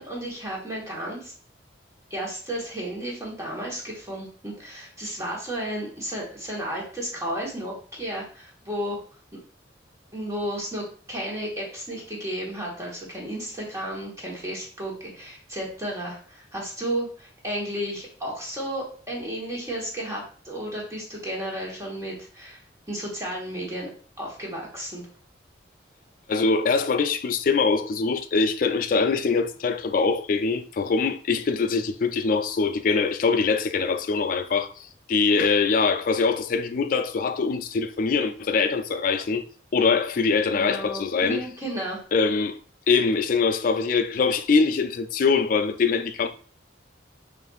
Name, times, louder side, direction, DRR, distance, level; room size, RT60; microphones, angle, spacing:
voice 1, 0.0-1.3 2.1-9.0 10.1-22.6 22.9-23.9 24.2-25.0 40.5-42.0, right 1 dB, 15° right, 1.1 m, -33 dB
voice 2, 26.3-39.4 39.7-41.4 42.1-42.6 42.9-46.3, left 4 dB, 45° left, 0.3 m, -23 dB
6.6 x 2.5 x 2.4 m
head